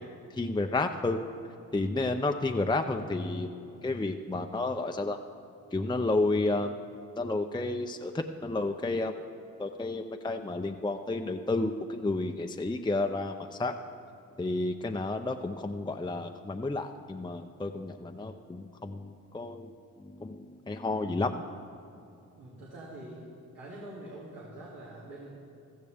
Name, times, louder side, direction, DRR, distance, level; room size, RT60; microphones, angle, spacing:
voice 1, 0.4-1.2 1.7-3.5 3.8-5.2 5.7-6.7 7.2-9.1 9.6-13.3 13.6-13.7 14.4-19.7 20.2-21.3, left 2 dB, 15° left, 4 dB, 0.6 m, -31 dB
voice 2, 22.3-25.3, right 1 dB, 85° right, -6 dB, 2.5 m, -45 dB
15.5 x 14.0 x 3.5 m, 2.8 s
cardioid pair, 60°, 35 cm